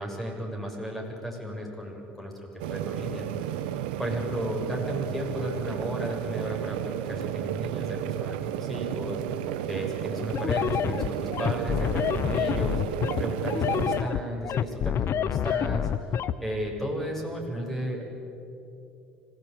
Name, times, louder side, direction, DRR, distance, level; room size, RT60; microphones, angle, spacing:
voice 1, 0.0-9.2 9.7-15.9 16.4-18.0, equal, 5° left, 0 dB, 7.5 m, -34 dB
sound 1, 2.6-14.0, right 11 dB, 85° right, 1.2 m, -32 dB
sound 2, 10.3-16.3, left 9 dB, 50° left, 0.9 m, -27 dB
25.5 x 19.0 x 9.1 m, 2.8 s
supercardioid pair, 80°, 5 cm